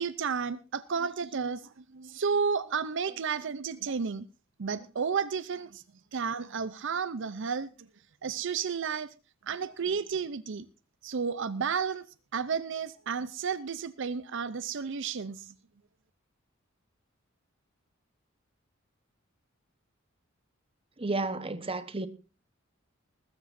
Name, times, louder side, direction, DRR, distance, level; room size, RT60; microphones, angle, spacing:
voice 1, 0.0-4.3 4.6-5.8 6.1-7.7 8.2-9.1 9.5-10.7 11.0-12.1 12.3-15.5, right 6 dB, 65° right, 0.6 m, -32 dB
voice 2, 21.0-22.1, right 2 dB, 25° right, 1.1 m, -32 dB
21.0 x 13.0 x 2.6 m
head